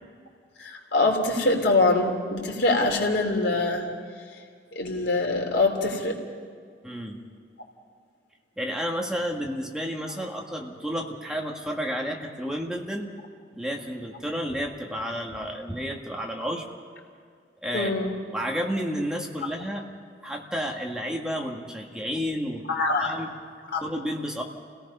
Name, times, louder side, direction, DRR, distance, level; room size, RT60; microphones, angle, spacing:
voice 1, 0.6-3.9 4.8-6.2 17.7-18.1 22.7-23.2 23.7-23.8, left 2 dB, 85° left, 1 dB, 3.3 m, -24 dB
voice 2, 6.8-7.2 8.6-13.1 13.5-16.7 17.6-17.9 18.3-19.9 20.2-22.7 23.0-23.5 23.8-24.4, equal, 5° right, 0 dB, 1.8 m, -31 dB
30.0 x 17.5 x 5.6 m, 2.1 s
head